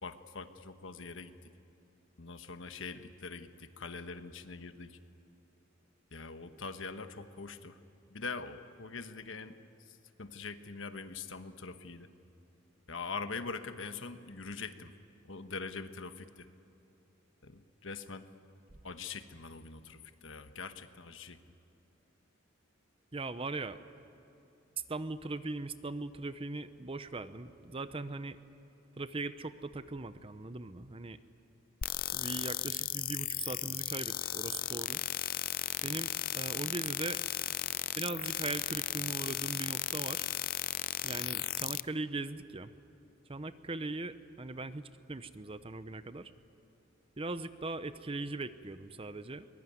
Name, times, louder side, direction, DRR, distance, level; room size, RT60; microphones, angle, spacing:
voice 1, 0.0-1.5 2.2-5.0 6.1-7.8 8.1-12.1 12.9-14.9 15.2-16.5 17.4-18.3 18.8-21.4, left 4 dB, 70° left, 9 dB, 1.2 m, -43 dB
voice 2, 23.1-23.8 24.9-28.4 29.0-31.2 32.1-35.0 35.8-37.2 38.0-40.3 41.0-42.7 43.3-46.3 47.2-49.5, right 2 dB, 25° right, 12 dB, 0.7 m, -40 dB
sound 1, 31.8-41.8, left 13 dB, 45° left, 0.5 m, -35 dB
23.0 x 21.5 x 9.4 m, 2.9 s
head